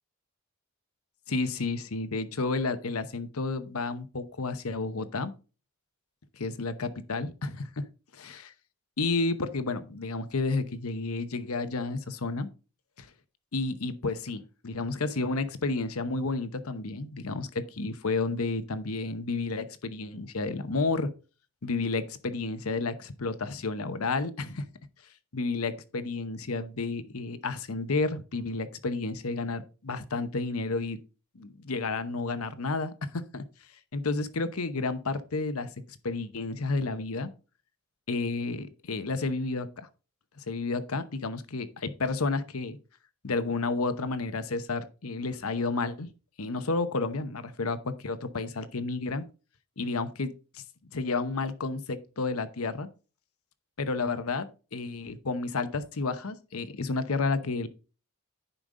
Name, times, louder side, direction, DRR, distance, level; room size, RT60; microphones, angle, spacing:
voice 1, 1.3-5.3 6.4-7.7 8.2-8.4 9.0-12.5 13.0-13.1 13.5-21.1 21.6-24.7 25.3-31.0 31.3-33.4 33.9-37.3 38.1-39.9 40.4-42.8 43.2-46.1 46.4-49.2 49.8-50.6 50.9-52.9 53.8-57.7, left 3 dB, 80° left, 12 dB, 0.9 m, -31 dB
10.0 x 5.3 x 3.7 m, 0.34 s
head